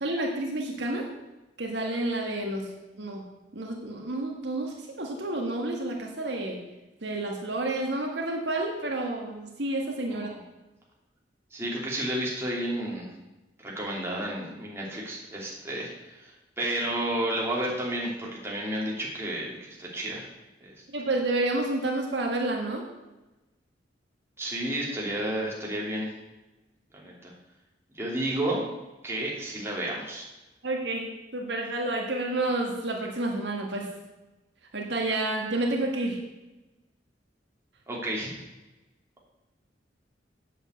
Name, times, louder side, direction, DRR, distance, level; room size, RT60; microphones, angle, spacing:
voice 1, 0.0-1.1 1.6-2.7 3.0-3.2 3.5-6.6 7.0-10.3 20.9-22.8 30.6-33.9 34.7-36.2, right 2 dB, 70° right, 1 dB, 1.7 m, -30 dB
voice 2, 11.5-13.1 13.6-20.3 20.6-20.7 24.4-26.1 26.9-27.3 27.9-28.7 29.0-30.3 37.9-38.3, right 1 dB, 15° right, -4 dB, 2.9 m, -31 dB
7.9 x 7.5 x 8.0 m, 1.1 s
head